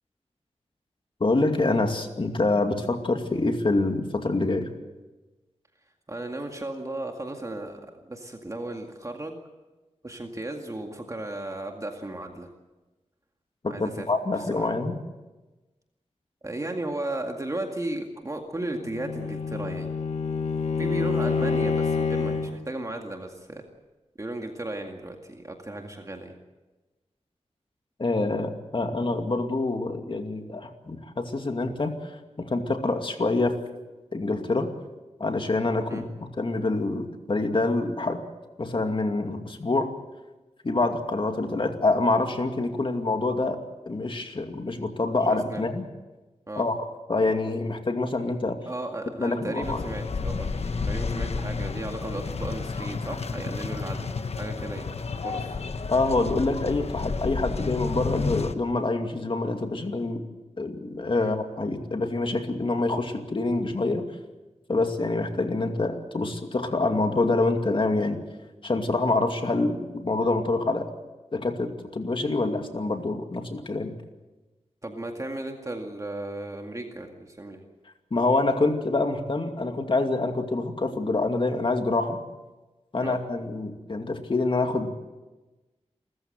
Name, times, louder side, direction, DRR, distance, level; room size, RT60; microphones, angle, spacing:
voice 1, 1.2-4.7 13.6-15.0 28.0-32.1 32.4-33.6 34.1-34.7 35.2-38.2 38.6-39.9 40.6-43.6 43.9-45.8 46.6-46.8 47.1-48.6 49.2-49.8 55.9-60.2 60.6-64.1 64.7-68.2 68.6-70.9 71.3-73.9 78.1-82.2 82.9-84.9, left 2 dB, 45° left, 5 dB, 2.4 m, -26 dB
voice 2, 6.1-9.4 10.0-12.5 13.7-14.1 14.3-14.7 16.4-19.9 20.8-23.6 24.2-26.3 35.9-36.0 45.5-45.6 46.5-46.6 48.7-54.9 55.2-55.6 61.2-61.3 74.8-77.6 83.0-83.2, right 1 dB, 30° right, 3 dB, 2.1 m, -35 dB
Bowed string instrument, 18.7-22.6, left 5 dB, 90° left, 2.2 m, -27 dB
sound 1, 49.6-58.5, left 4 dB, 65° left, 1.2 m, -31 dB
29.5 x 14.5 x 7.9 m, 1.2 s
wide cardioid pair, 90°, 12 cm